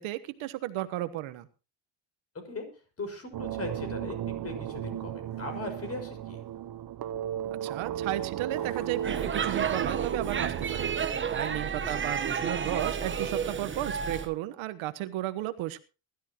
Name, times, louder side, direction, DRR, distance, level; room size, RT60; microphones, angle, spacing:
voice 1, 0.0-1.5 7.6-15.8, right 15 dB, 70° right, 12 dB, 1.3 m, -34 dB
voice 2, 3.0-6.4 11.8-12.0, left 3 dB, 30° left, 7 dB, 5.8 m, -39 dB
sound 1, 3.3-11.1, right 11 dB, 45° right, 1.0 m, -35 dB
Skateboard, 4.8-12.2, left 5 dB, 80° left, 5.2 m, -56 dB
Speech / Shout / Subway metro underground, 9.0-14.3, right 6 dB, 25° right, 1.2 m, -31 dB
21.0 x 13.0 x 3.0 m, 0.32 s
cardioid pair, 115°, 50 cm